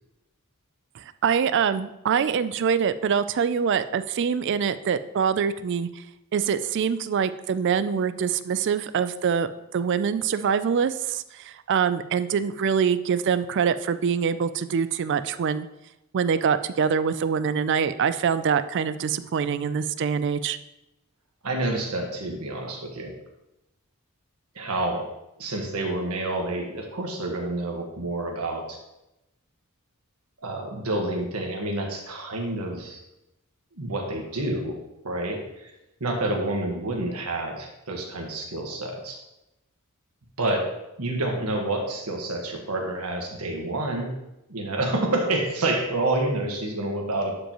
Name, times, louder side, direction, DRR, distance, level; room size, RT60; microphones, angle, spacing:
voice 1, 1.0-6.0 6.3-15.7 16.1-20.6, right 6 dB, 55° right, 13 dB, 0.3 m, -24 dB
voice 2, 21.4-23.1 24.5-25.0 25.4-28.8 30.4-33.0 33.7-34.8 35.0-35.7 36.0-39.2 40.4-40.7 41.0-44.1 44.5-47.4, right 2 dB, 90° right, 1 dB, 1.4 m, -28 dB
11.5 x 5.2 x 3.0 m, 0.89 s
head